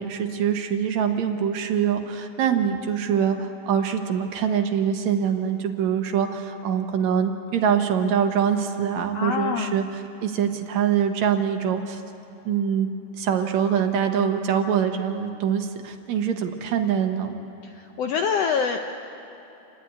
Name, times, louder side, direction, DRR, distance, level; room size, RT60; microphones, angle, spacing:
voice 1, 0.0-12.0 12.5-12.9 13.2-17.3, right 8 dB, 70° right, 6 dB, 2.3 m, -24 dB
voice 2, 9.1-9.7 18.0-18.8, left 6 dB, 70° left, 4 dB, 1.6 m, -24 dB
28.5 x 11.5 x 9.5 m, 2.9 s
omnidirectional pair, 3.5 m